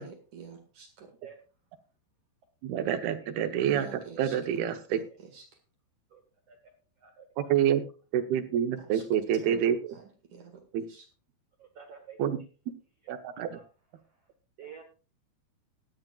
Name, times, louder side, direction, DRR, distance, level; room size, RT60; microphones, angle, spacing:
voice 1, 0.0-1.1 3.7-5.0 5.3-5.4 8.9-9.0 9.4-9.6 9.9-10.0 10.3-11.0, right 6 dB, 55° right, 5 dB, 2.6 m, -48 dB
voice 2, 2.6-5.0 7.4-7.8 8.1-10.0 10.7-10.9 12.2-12.4 13.1-13.6, right 9 dB, 70° right, 7 dB, 2.5 m, -28 dB
voice 3, 11.6-12.2 13.5-13.6 14.6-14.8, right 7 dB, 90° right, 5 dB, 1.3 m, -48 dB
18.0 x 11.0 x 2.4 m, 0.34 s
omnidirectional pair, 5.4 m